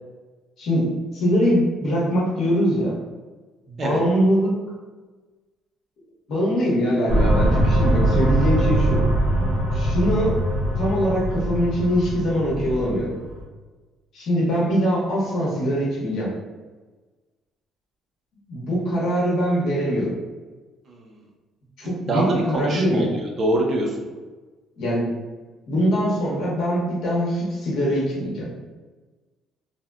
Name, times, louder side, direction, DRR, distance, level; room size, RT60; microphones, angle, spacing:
voice 1, 0.6-3.0 3.7-4.6 6.3-9.0 9.7-10.4 10.8-13.1 14.1-16.3 18.5-20.2 21.8-23.1 24.8-25.1 25.7-28.5, equal, 55° left, -5 dB, 0.8 m, -22 dB
sound 1, 7.1-13.4, right 1 dB, 60° right, 0.9 m, -22 dB
voice 2, 22.1-23.9, right 1 dB, 35° right, -1 dB, 0.4 m, -24 dB
2.6 x 2.0 x 2.3 m, 1.3 s
cardioid pair, 155°, 0 cm